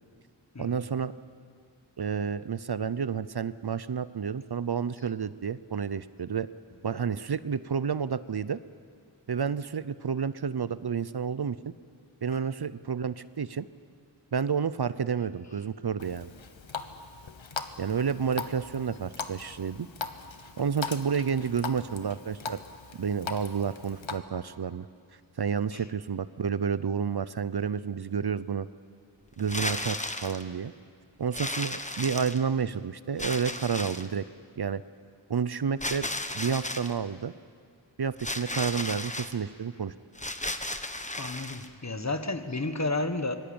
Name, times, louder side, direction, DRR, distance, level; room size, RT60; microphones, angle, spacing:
voice 1, 0.6-1.1 2.0-6.5 6.8-8.6 9.3-11.6 12.2-13.7 14.3-16.3 17.8-19.9 20.6-22.6 22.9-24.9 25.4-28.7 29.4-30.7 31.2-34.2 34.6-34.8 35.3-36.1 36.3-37.3 38.0-39.9, right 6 dB, 55° right, 15 dB, 0.6 m, -30 dB
Water tap faucet, 16.0-24.2, left 5 dB, 80° left, 1.3 m, -40 dB
sound 1, 29.4-30.4 31.3-32.6 33.2-34.1 35.8-36.9 38.2-39.3 40.2-41.7, left 1 dB, 15° left, 1.2 m, -34 dB
voice 2, 41.1-43.4, left 2 dB, 35° left, 9 dB, 1.5 m, -32 dB
24.0 x 19.5 x 8.8 m, 2.1 s
wide cardioid pair, 60°, 45 cm